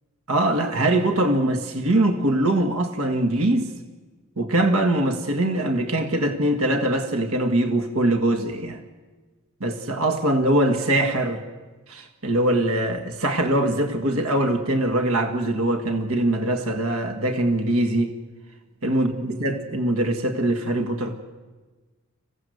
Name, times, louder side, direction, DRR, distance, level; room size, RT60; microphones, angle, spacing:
voice 1, 0.3-3.7 4.4-8.8 9.6-11.4 11.9-18.1 18.8-21.2, right 1 dB, 85° right, 6 dB, 1.8 m, -22 dB
26.5 x 16.0 x 8.0 m, 1.3 s
head